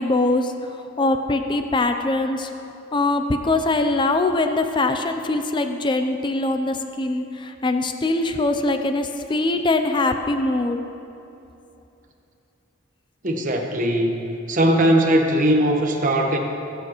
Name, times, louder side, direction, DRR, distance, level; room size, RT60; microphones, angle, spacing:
voice 1, 0.0-2.5 2.9-10.8, left 2 dB, 25° left, 7 dB, 0.5 m, -22 dB
voice 2, 13.2-16.4, right 1 dB, 40° right, 2 dB, 1.1 m, -20 dB
19.0 x 9.0 x 3.0 m, 2.8 s
head